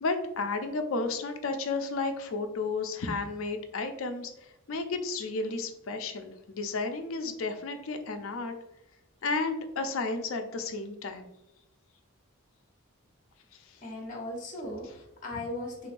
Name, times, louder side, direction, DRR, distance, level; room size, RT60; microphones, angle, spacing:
voice 1, 0.0-8.5 9.2-11.2 13.5-13.8, left 3 dB, 70° left, 6 dB, 0.5 m, -32 dB
voice 2, 13.8-15.9, left 1 dB, 40° left, -2 dB, 1.1 m, -38 dB
3.6 x 3.1 x 2.5 m, 0.86 s
head